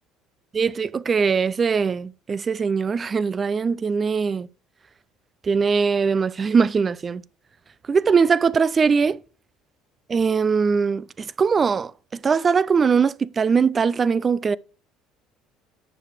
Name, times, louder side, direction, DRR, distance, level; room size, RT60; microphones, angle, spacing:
voice 1, 0.5-4.5 5.4-7.2 7.9-9.2 10.1-14.6, right 5 dB, 35° right, 0.3 m, -21 dB
9.8 x 4.8 x 3.3 m
hypercardioid pair, 65°, 0 cm